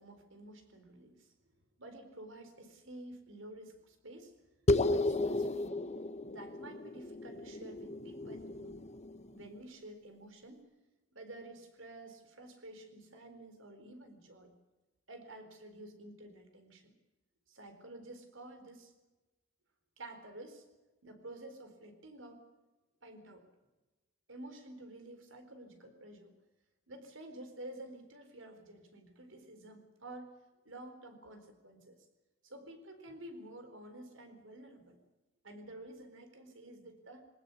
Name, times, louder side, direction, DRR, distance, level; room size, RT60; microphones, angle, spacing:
voice 1, 0.0-1.3 1.8-4.4 4.8-5.8 6.3-8.7 9.3-10.6 11.1-14.5 15.1-16.9 17.5-18.9 20.0-20.7 21.0-22.4 23.0-23.5 24.3-26.3 26.9-30.3 30.6-32.1 32.4-35.0 35.4-37.3, right 1 dB, 75° right, 7 dB, 4.2 m, -50 dB
sound 1, 4.7-9.5, left 2 dB, 35° left, 0.9 m, -34 dB
21.5 x 19.5 x 8.4 m, 1.1 s
head